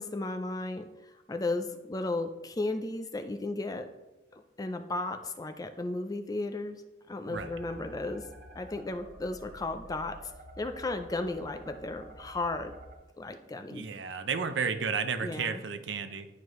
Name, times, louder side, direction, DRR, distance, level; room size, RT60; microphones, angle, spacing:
voice 1, 0.0-3.9 4.3-6.8 7.1-8.3 8.5-10.3 10.6-12.8 13.2-13.8 15.2-15.6, left 2 dB, 20° left, 8 dB, 0.4 m, -35 dB
sound 1, 7.3-12.9, right 1 dB, 50° right, 1.5 m, -50 dB
voice 2, 13.7-16.3, right 5 dB, 80° right, 8 dB, 0.6 m, -32 dB
10.5 x 4.7 x 3.1 m, 1.0 s
head